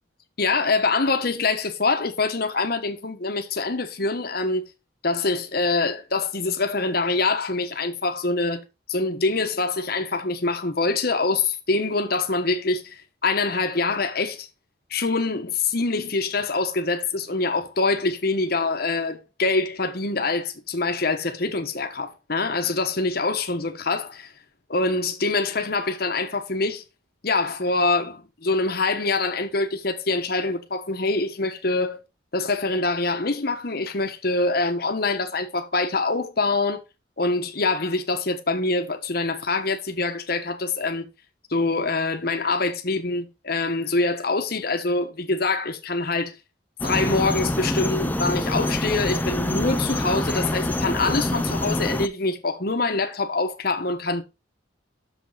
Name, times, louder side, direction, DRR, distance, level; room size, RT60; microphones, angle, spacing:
voice 1, 0.4-4.6 5.0-8.6 8.9-13.0 13.2-14.5 14.9-24.3 24.7-26.8 27.2-32.0 32.3-36.8 37.2-41.1 41.5-46.3 46.8-54.2, left 3 dB, 55° left, 1.2 m, -25 dB
sound 1, 46.8-52.1, left 1 dB, 10° left, 0.5 m, -26 dB
6.9 x 6.5 x 4.0 m
head